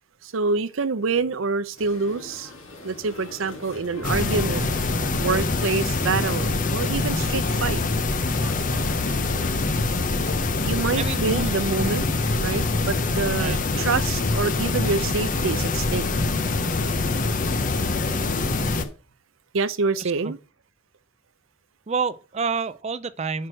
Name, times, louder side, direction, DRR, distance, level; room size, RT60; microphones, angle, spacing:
voice 1, 0.2-2.5 2.8-4.7 5.1-7.8 10.7-12.1 12.4-16.1 19.5-20.4, right 4 dB, 75° right, 0.6 m, -26 dB
sound 1, 1.8-18.9, left 1 dB, 70° left, 2.0 m, -42 dB
sound 2, 4.0-18.8, left 3 dB, 40° left, 0.6 m, -24 dB
voice 2, 11.0-11.5 11.8-12.0 13.4-13.6 20.0-20.3 21.9-23.5, right 5 dB, 30° right, 0.5 m, -28 dB
6.1 x 4.6 x 6.2 m
head